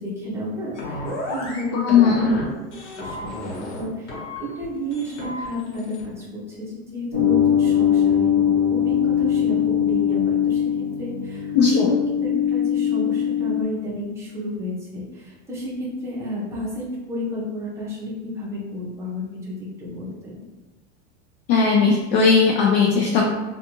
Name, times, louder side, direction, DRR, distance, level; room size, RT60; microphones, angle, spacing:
voice 1, 0.0-2.2 2.8-20.4, left 1 dB, 10° right, -6 dB, 0.5 m, -31 dB
sound 1, 0.7-1.6 1.9-2.4 2.7-3.8 4.1-4.6 4.9-6.0, left 1 dB, 90° left, 1.2 m, -32 dB
voice 2, 1.8-2.3 11.5-11.9 21.5-23.2, left 5 dB, 60° left, -1 dB, 0.5 m, -17 dB
sound 2, 7.1-13.6, left 9 dB, 30° left, 1.0 m, -21 dB
2.4 x 2.3 x 2.9 m, 1.2 s
supercardioid pair, 145°, 35 cm